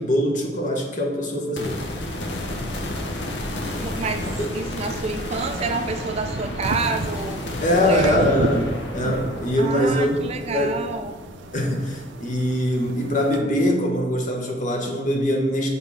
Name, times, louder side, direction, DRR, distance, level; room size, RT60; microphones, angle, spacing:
voice 1, 0.0-1.8 2.3-2.4 3.8-3.9 4.2-4.5 7.6-10.7 11.5-15.7, equal, 45° left, 1 dB, 1.2 m, -23 dB
sound 1, 1.6-12.9, left 1 dB, 75° left, 0.9 m, -32 dB
voice 2, 3.8-4.3 4.5-7.4 7.7-8.2 9.6-11.2, right 3 dB, 35° right, 6 dB, 0.4 m, -28 dB
sound 2, 5.2-13.4, right 3 dB, 90° right, 0.5 m, -33 dB
7.0 x 3.5 x 5.6 m, 1.3 s
head